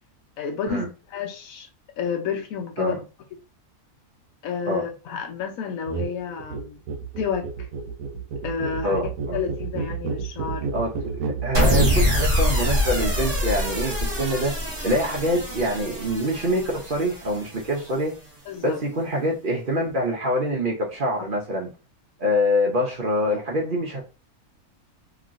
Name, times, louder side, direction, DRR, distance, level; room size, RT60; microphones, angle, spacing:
voice 1, 0.4-1.7 2.0-3.0 4.4-6.8 7.2-7.7 8.4-10.7 18.5-18.8 21.2-21.3, left 6 dB, 70° left, 1.1 m, -30 dB
sound 1, 5.9-6.1 6.4-12.0, right 5 dB, 75° right, 1.1 m, -30 dB
voice 2, 8.8-9.4 10.7-10.9 11.2-14.5 14.8-18.2 18.6-21.7 22.2-24.0, equal, 45° right, 0.8 m, -25 dB
sound 2, 11.5-17.9, equal, 30° right, 1.2 m, -24 dB
3.1 x 2.9 x 2.5 m
omnidirectional pair, 1.6 m